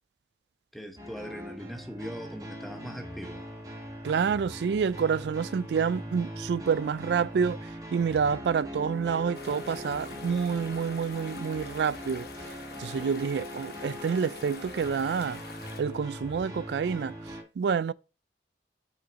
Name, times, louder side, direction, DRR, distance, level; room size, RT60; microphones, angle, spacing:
voice 1, 0.7-3.5, equal, ahead, 0.8 m, -41 dB
sound 1, 1.0-17.4, equal, 20° right, 1.9 m, -41 dB
voice 2, 4.0-12.3 12.8-15.4 15.8-17.2 17.6-17.9, right 6 dB, 70° right, 0.3 m, -28 dB
sound 2, 9.3-15.8, left 4 dB, 55° left, 1.1 m, -46 dB
6.1 x 6.0 x 4.1 m
head